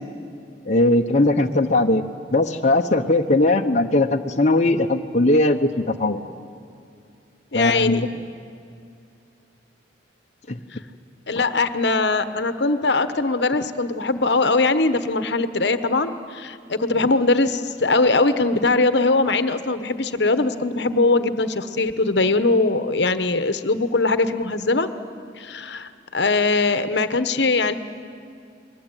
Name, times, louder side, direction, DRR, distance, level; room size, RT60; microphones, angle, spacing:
voice 1, 0.7-2.0 2.3-6.2 7.5-8.1 10.5-10.6 11.3-11.4, left 2 dB, 40° left, 2 dB, 1.0 m, -19 dB
voice 2, 7.5-8.0 11.3-24.9 25.4-27.7, left 3 dB, 65° left, 10 dB, 1.2 m, -21 dB
30.0 x 22.0 x 9.1 m, 2.4 s
head